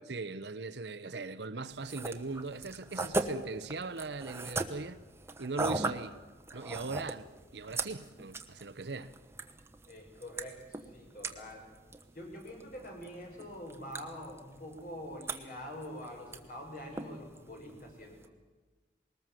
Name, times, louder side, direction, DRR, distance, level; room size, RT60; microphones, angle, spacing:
voice 1, 0.1-5.0 5.4-6.2 6.5-9.2, right 3 dB, 75° right, 0.9 m, -39 dB
sound 1, 1.7-18.3, right 2 dB, 15° right, 1.1 m, -41 dB
voice 2, 9.9-11.7 12.1-18.3, equal, 50° left, 5.8 m, -45 dB
21.0 x 19.5 x 7.6 m
head